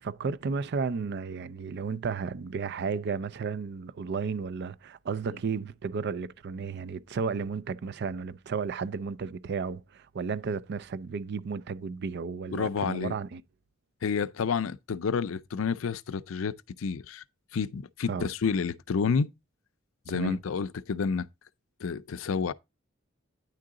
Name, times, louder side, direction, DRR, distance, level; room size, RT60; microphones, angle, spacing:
voice 1, 0.0-13.4 18.1-18.3 20.1-20.4, right 5 dB, 55° right, 0.4 m, -33 dB
voice 2, 12.5-13.1 14.0-17.2 17.5-19.3 20.1-21.3 21.8-22.5, left 5 dB, 85° left, 0.5 m, -29 dB
9.6 x 3.8 x 3.7 m
head